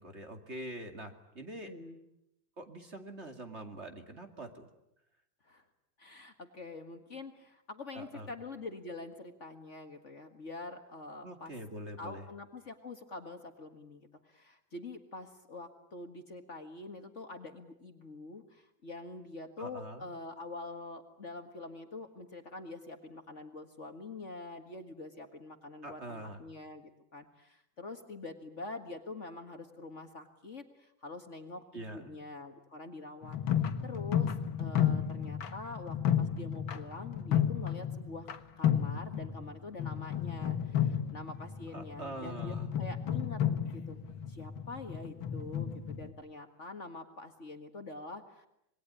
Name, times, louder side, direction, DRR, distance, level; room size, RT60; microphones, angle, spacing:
voice 1, 0.0-1.7 2.6-4.7 7.9-8.3 11.2-12.2 19.6-20.1 25.8-26.4 31.7-32.1 41.7-42.7, right 1 dB, 35° right, 5 dB, 2.7 m, -44 dB
voice 2, 1.6-2.0 5.4-5.7 6.0-11.5 12.0-34.3 34.6-38.3 38.6-43.4 43.7-44.0 44.3-48.5, left 3 dB, 40° left, 6 dB, 2.0 m, -45 dB
sound 1, 33.2-38.4 38.6-39.5 39.8-46.1, left 9 dB, 80° left, 2.3 m, -32 dB
27.0 x 21.5 x 9.9 m, 0.82 s
omnidirectional pair, 2.1 m